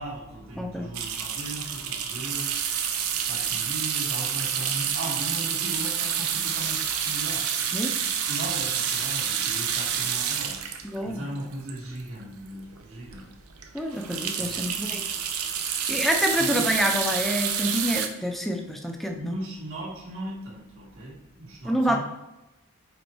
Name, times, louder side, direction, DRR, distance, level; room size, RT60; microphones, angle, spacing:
voice 1, 0.0-2.6 3.3-7.5 8.3-10.7 11.0-13.3 14.4-14.6 16.4-16.7 19.1-22.0, right 1 dB, 65° right, -6 dB, 2.0 m, -37 dB
voice 2, 0.6-0.9 7.7-7.9 10.8-11.3 13.7-15.0 15.9-19.3 21.6-22.0, equal, ahead, 3 dB, 0.5 m, -27 dB
sound 1, 0.9-12.2 12.7-12.8 13.1-13.2 13.6-18.1, right 8 dB, 85° right, 0.7 m, -28 dB
5.3 x 4.3 x 4.5 m, 0.96 s
head